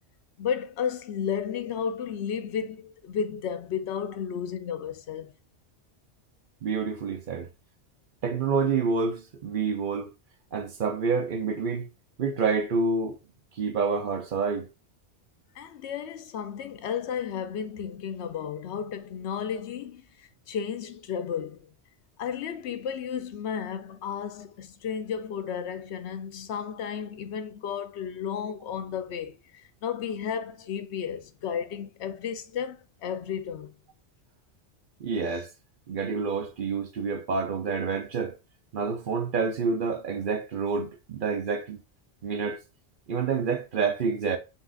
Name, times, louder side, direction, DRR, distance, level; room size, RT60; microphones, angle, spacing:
voice 1, 0.4-5.3 15.6-21.7 22.2-33.7, left 7 dB, 70° left, 0.9 m, -33 dB
voice 2, 6.6-7.5 8.2-10.1 10.5-11.9 12.2-13.2 13.6-14.7 35.0-35.5 35.9-38.4 38.7-41.8 42.2-42.6 43.1-44.4, right 5 dB, 55° right, 0.7 m, -28 dB
5.5 x 2.5 x 3.8 m
omnidirectional pair, 1.2 m